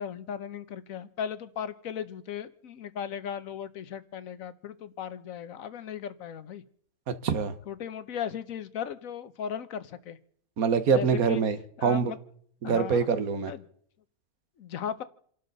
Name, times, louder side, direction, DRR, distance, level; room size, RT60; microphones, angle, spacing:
voice 1, 0.0-6.6 7.7-10.2 10.9-11.4 11.8-12.2 12.6-13.1 13.5-13.7 14.6-15.0, left 8 dB, 65° left, 13 dB, 1.3 m, -37 dB
voice 2, 7.1-7.5 10.6-12.1 12.6-13.5, right 6 dB, 70° right, 11 dB, 1.6 m, -25 dB
29.0 x 12.0 x 4.0 m, 0.62 s
omnidirectional pair, 1.6 m